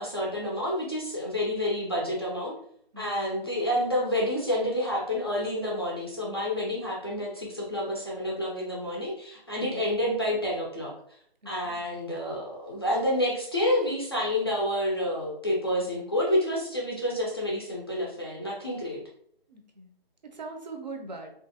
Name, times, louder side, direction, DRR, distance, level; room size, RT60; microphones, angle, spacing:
voice 1, 0.0-2.5 3.0-10.9 11.5-19.0, left 1 dB, 25° left, -4 dB, 0.4 m, -29 dB
voice 2, 2.9-3.3 9.6-9.8 11.4-11.8 19.5-19.9 20.2-21.3, right 3 dB, 50° right, 4 dB, 0.6 m, -41 dB
3.1 x 2.4 x 2.6 m, 0.67 s
figure-of-eight pair, 160°, 29 cm